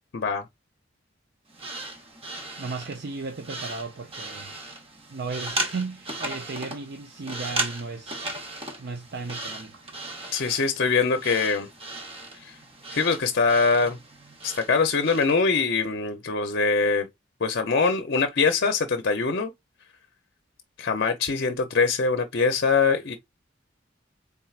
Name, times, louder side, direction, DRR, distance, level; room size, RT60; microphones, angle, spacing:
voice 1, 0.1-0.4 10.3-11.7 12.4-12.5 12.9-14.0 14.4-17.1 17.4-19.5 20.8-23.2, left 4 dB, 55° left, 0.6 m, -23 dB
sound 1, 1.5-15.4, right 2 dB, 30° right, 0.9 m, -36 dB
voice 2, 2.6-4.5 5.1-8.2 8.8-9.8, right 4 dB, 60° right, 0.5 m, -35 dB
4.5 x 3.6 x 2.4 m
head